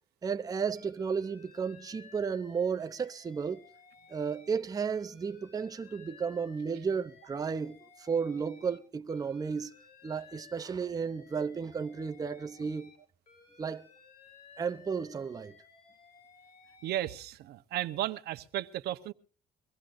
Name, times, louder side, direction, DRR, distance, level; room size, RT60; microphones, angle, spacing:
voice 1, 0.2-3.6 4.1-9.8 10.0-12.9 13.6-13.9 14.6-15.6, right 6 dB, 20° right, 0.6 m, -33 dB
Alarm, 0.8-4.6 4.9-8.8 9.1-13.0 13.3-17.1, left 5 dB, 55° left, 6.6 m, -57 dB
voice 2, 16.8-19.1, right 13 dB, 75° right, 0.9 m, -34 dB
23.5 x 16.0 x 2.5 m
cardioid pair, 110°, 17 cm